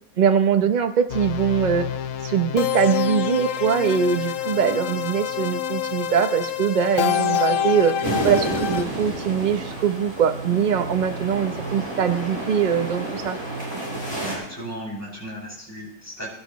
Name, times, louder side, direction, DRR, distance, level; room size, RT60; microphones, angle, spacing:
voice 1, 0.2-1.9 2.2-13.4, right 7 dB, 40° right, 8 dB, 0.8 m, -22 dB
sound 1, 1.1-8.8, left 9 dB, 70° left, 1.0 m, -26 dB
sound 2, 6.3-14.7, right 4 dB, 75° right, 1.6 m, -40 dB
sound 3, 8.0-14.3, right 1 dB, 20° right, 4.3 m, -30 dB
voice 2, 14.1-16.3, equal, 10° left, -6 dB, 7.0 m, -36 dB
22.0 x 12.0 x 3.1 m, 0.77 s
omnidirectional pair, 1.5 m